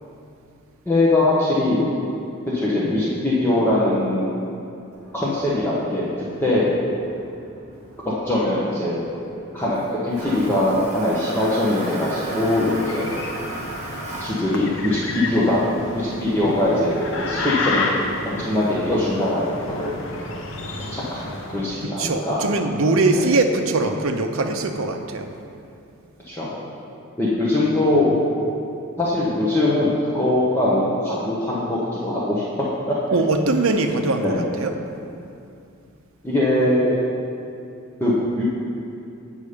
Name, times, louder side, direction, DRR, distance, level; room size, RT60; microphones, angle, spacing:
voice 1, 0.9-2.0 2.5-4.5 5.1-6.0 6.4-6.7 8.0-9.2 9.5-13.1 14.2-17.9 18.2-19.9 20.8-22.4 23.2-23.3 26.3-26.5 27.2-28.1 29.0-32.4 32.9-33.0 34.2-34.5 36.2-37.0 38.0-38.5, left 1 dB, 10° left, -8 dB, 0.9 m, -21 dB
Toilet flush, 4.9-17.2, right 1 dB, 30° right, 1.6 m, -38 dB
sound 1, 12.0-21.8, left 2 dB, 60° left, 0.7 m, -31 dB
voice 2, 21.8-25.3 33.1-34.7, right 2 dB, 70° right, 5 dB, 0.6 m, -21 dB
8.3 x 5.5 x 5.0 m, 2.6 s
head